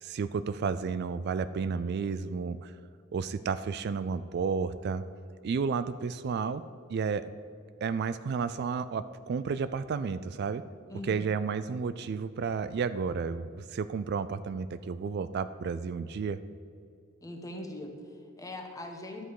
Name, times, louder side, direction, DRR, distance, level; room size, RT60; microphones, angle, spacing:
voice 1, 0.0-2.7 3.1-5.0 5.4-6.6 6.9-7.3 7.8-10.6 11.0-16.4, right 5 dB, 50° right, 13 dB, 0.3 m, -32 dB
voice 2, 10.9-11.4 17.2-19.2, left 1 dB, 15° left, 2 dB, 1.2 m, -41 dB
11.5 x 7.9 x 4.8 m, 2.3 s
head